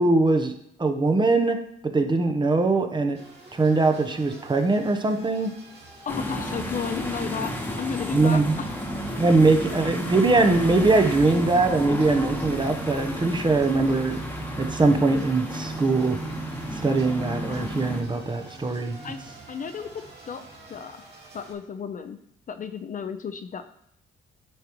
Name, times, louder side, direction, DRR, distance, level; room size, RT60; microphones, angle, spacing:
voice 1, 0.0-1.6 1.8-3.2 3.5-5.5 8.1-8.6 9.2-14.2 14.6-16.2 16.7-19.0, right 3 dB, 25° right, 5 dB, 0.8 m, -22 dB
sound 1, 3.1-21.5, right 2 dB, 55° right, 2.4 m, -46 dB
voice 2, 6.1-8.4 19.0-19.2 19.5-21.0 21.3-22.2 22.5-23.6, left 6 dB, 40° left, 9 dB, 0.6 m, -33 dB
sound 2, 6.1-18.0, equal, 10° left, 1.1 m, -32 dB
8.9 x 4.9 x 3.0 m, 0.72 s
cardioid pair, 90°, 20 cm